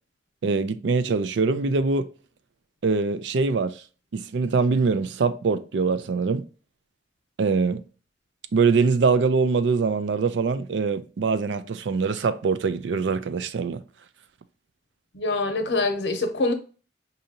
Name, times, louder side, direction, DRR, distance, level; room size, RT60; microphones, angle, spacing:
voice 1, 0.4-2.1 2.8-3.8 4.1-6.5 7.4-7.8 8.5-13.8, right 4 dB, 80° right, 0.4 m, -23 dB
voice 2, 15.1-16.5, left 2 dB, 75° left, 0.8 m, -24 dB
5.2 x 2.7 x 2.7 m
head